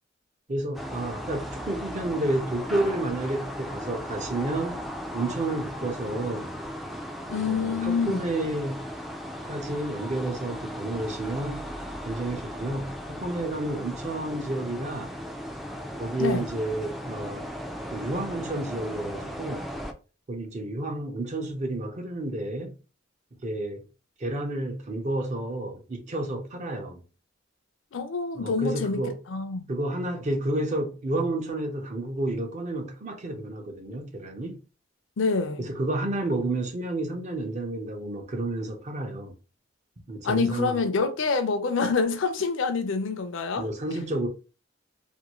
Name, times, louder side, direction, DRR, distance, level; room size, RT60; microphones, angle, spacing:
voice 1, 0.5-4.8 5.1-6.6 7.4-8.9 9.5-11.7 12.0-15.2 16.0-17.5 17.9-19.7 20.3-22.7 23.3-23.8 24.2-27.0 28.3-29.2 29.7-34.6 35.6-39.4 40.1-40.8 43.6-44.3, right 2 dB, 40° right, 0.6 m, -30 dB
sound 1, 0.7-19.9, equal, ahead, 0.3 m, -37 dB
voice 2, 7.3-8.3 16.2-16.4 27.9-29.7 35.2-35.6 40.2-43.7, left 4 dB, 75° left, 0.5 m, -26 dB
2.6 x 2.6 x 2.9 m
head